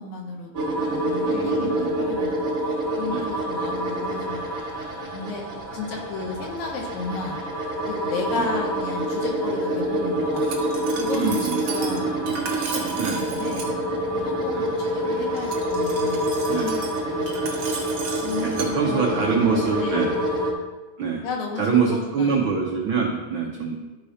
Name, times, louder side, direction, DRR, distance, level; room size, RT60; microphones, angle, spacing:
voice 1, 0.0-2.4 3.0-4.5 5.1-5.4 5.7-7.4 7.8-10.5 11.0-13.7 14.1-17.5 18.2-20.1 21.2-22.5, left 3 dB, 75° left, 0 dB, 2.7 m, -33 dB
sound 1, 0.5-20.5, right 1 dB, 40° right, 1.2 m, -27 dB
voice 2, 1.3-2.0 3.1-3.3 8.3-8.5 11.1-12.0 13.0-13.2 14.5-14.7 16.5-16.8 18.4-20.1 21.0-21.2 21.6-23.8, right 5 dB, 85° right, 0 dB, 1.1 m, -25 dB
Glass, 10.3-13.7 15.4-18.7, right 5 dB, 60° right, 1.9 m, -35 dB
12.5 x 4.9 x 4.2 m, 1.2 s
omnidirectional pair, 3.4 m